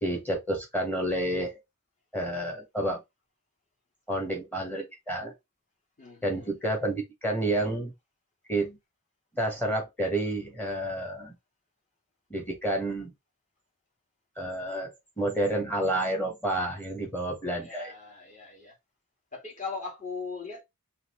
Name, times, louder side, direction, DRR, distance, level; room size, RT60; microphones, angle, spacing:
voice 1, 0.0-1.6 2.1-3.0 4.1-5.3 6.2-7.9 8.5-8.8 9.3-11.3 12.3-13.1 14.4-17.9, right 1 dB, 10° left, 1.3 m, -30 dB
voice 2, 6.0-6.5 17.5-18.7 19.3-20.6, left 4 dB, 35° left, 2.2 m, -39 dB
4.0 x 3.1 x 3.1 m
head